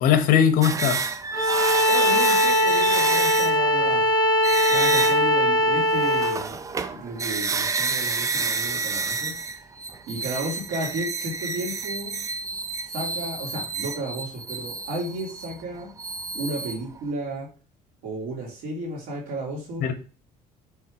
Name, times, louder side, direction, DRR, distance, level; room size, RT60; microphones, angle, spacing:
voice 1, 0.0-1.1 19.8-19.9, left 8 dB, 65° left, 1.0 m, -19 dB
sound 1, 0.6-3.8 4.4-5.4 5.8-17.0, right 4 dB, 20° right, 0.4 m, -29 dB
Bowed string instrument, 1.3-6.4, equal, 25° left, 1.3 m, -20 dB
voice 2, 1.9-4.0 4.7-9.3 10.1-12.2 12.9-15.9 16.3-17.5 18.0-19.9, right 1 dB, 75° right, 2.6 m, -33 dB
5.7 x 3.6 x 4.8 m
cardioid pair, 120°, 16 cm